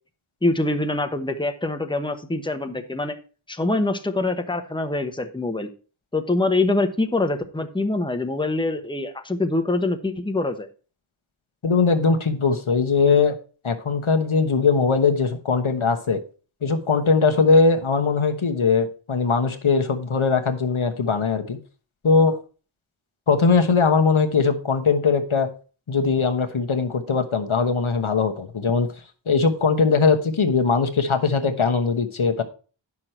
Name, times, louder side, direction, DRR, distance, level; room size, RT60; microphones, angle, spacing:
voice 1, 0.4-3.2 3.5-5.7 6.1-10.7, left 2 dB, 10° left, 6 dB, 1.0 m, -24 dB
voice 2, 11.6-13.3 13.6-16.2 16.6-21.6 22.0-22.4 23.3-25.5 25.9-28.9 29.3-32.4, left 4 dB, 80° left, 5 dB, 1.2 m, -20 dB
9.6 x 6.2 x 4.4 m, 0.36 s
wide cardioid pair, 45°, 48 cm